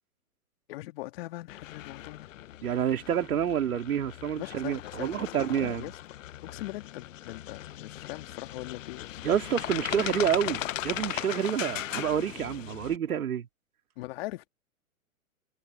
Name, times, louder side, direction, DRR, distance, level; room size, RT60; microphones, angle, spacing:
voice 1, 0.7-2.4 4.4-5.3 5.5-6.0 6.4-9.2 14.0-14.5, left 19 dB, 45° left, 2.0 m, -41 dB
sound 1, 1.5-13.0, left 13 dB, 60° left, 0.9 m, -38 dB
voice 2, 2.6-5.9 9.2-13.5, right 9 dB, 75° right, 2.7 m, -28 dB
hypercardioid pair, 135°, 43 cm